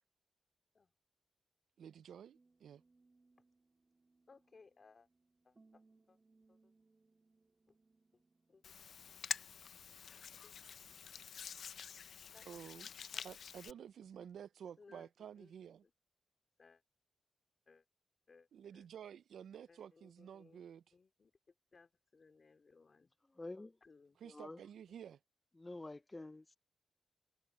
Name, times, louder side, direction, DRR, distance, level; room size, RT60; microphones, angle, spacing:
voice 1, 1.8-2.8 12.5-12.9 13.2-15.8 18.5-20.8 24.2-25.2, right 8 dB, 85° right, 0.4 m, -52 dB
sound 1, 2.3-8.7, right 3 dB, 25° right, 3.5 m, -72 dB
voice 2, 4.3-5.1 5.4-5.8 6.1-6.2 6.5-6.7 7.7-7.8 8.1-8.2 8.5-8.7 10.4-10.5 12.3-12.6 13.1-13.3 14.8-15.1 15.4-15.9 16.6-16.8 17.7-17.8 18.3-18.5 18.7-18.9 19.7-20.6 20.9-21.3 21.7-23.1 23.8-24.2 24.9-25.0, left 4 dB, 35° left, 3.0 m, -64 dB
Hands, 8.6-13.7, left 7 dB, 70° left, 0.6 m, -47 dB
voice 3, 23.3-23.8 24.2-24.6 25.6-26.6, left 2 dB, 15° left, 0.5 m, -48 dB
wide cardioid pair, 135°, 0 cm